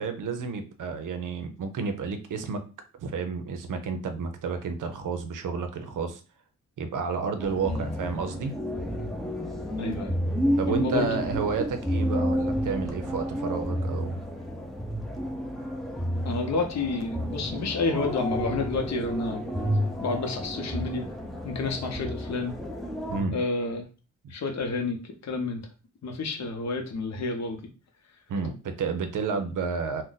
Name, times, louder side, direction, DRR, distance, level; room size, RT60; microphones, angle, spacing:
voice 1, 0.0-2.6 3.0-6.2 6.8-8.5 10.6-14.2 23.1-23.4 24.2-24.3 28.3-30.0, right 5 dB, 85° right, 8 dB, 0.6 m, -31 dB
sound 1, 7.4-23.2, equal, ahead, 0.4 m, -31 dB
voice 2, 9.8-10.1 10.7-11.2 16.2-19.4 20.0-21.1 21.4-22.5 23.3-23.8 24.3-25.6 26.0-27.6, left 3 dB, 60° left, 3 dB, 0.7 m, -30 dB
2.5 x 2.1 x 3.9 m, 0.34 s
wide cardioid pair, 135°, 30 cm